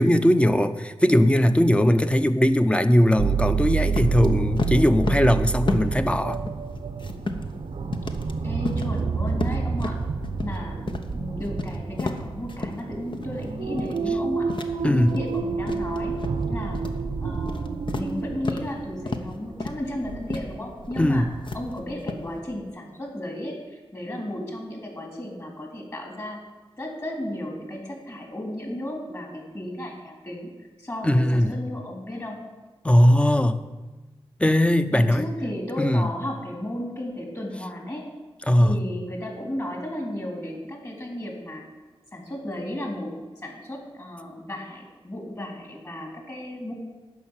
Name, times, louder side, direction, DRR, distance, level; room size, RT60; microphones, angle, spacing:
voice 1, 0.0-6.4 14.8-15.2 21.0-21.3 31.0-31.6 32.8-33.6 34.4-35.3 35.8-36.1 38.5-38.8, equal, 10° left, 10 dB, 0.8 m, -19 dB
sound 1, 3.2-21.9 22.4-22.5, right 5 dB, 85° right, 0.8 m, -29 dB
sound 2, 3.9-4.3 4.6-5.4 5.7-6.1 6.3-7.6 7.9-8.3 8.7-9.0 9.3-10.6 10.9-11.1 11.4-12.8 13.1-13.4 13.8-14.1 14.5-15.4 15.7-16.4 16.7-17.0 17.3-18.7 19.1-19.3 19.6-19.9 20.3-20.5 20.8-21.1 21.4-22.2, left 3 dB, 55° left, 1.0 m, -32 dB
voice 2, 8.4-10.0 10.4-10.8 11.1-14.5 14.9-16.2 16.5-16.8 17.2-21.3 21.5-26.4 26.8-30.5 30.8-32.4 34.9-38.1 38.6-41.7 42.1-46.7, left 1 dB, 30° left, 0 dB, 3.7 m, -34 dB
11.0 x 5.8 x 8.9 m, 1.2 s
cardioid pair, 55°, 10 cm